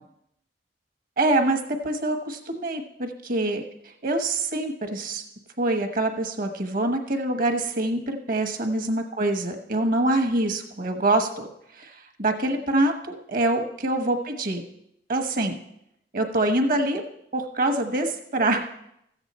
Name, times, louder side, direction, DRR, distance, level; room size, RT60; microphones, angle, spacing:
voice 1, 1.2-3.6 4.0-5.2 5.6-11.5 11.8-14.6 15.1-15.6 16.1-17.0 17.3-18.6, right 2 dB, 55° right, 7 dB, 1.2 m, -25 dB
14.0 x 8.1 x 4.2 m, 0.78 s
head